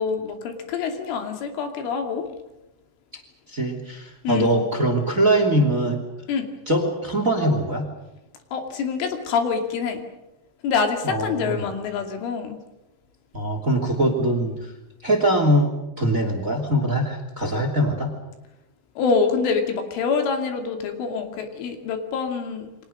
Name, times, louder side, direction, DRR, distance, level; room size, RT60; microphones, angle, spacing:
voice 1, 0.0-2.2 4.2-4.5 6.3-6.5 8.5-10.1 10.6-12.6 19.0-22.7, left 5 dB, 85° left, 5 dB, 5.2 m, -25 dB
voice 2, 3.5-6.0 6.7-7.9 11.0-11.6 13.3-14.7 15.0-18.1, right 1 dB, 20° right, 5 dB, 2.3 m, -22 dB
30.0 x 23.5 x 6.6 m, 0.95 s
omnidirectional pair, 5.5 m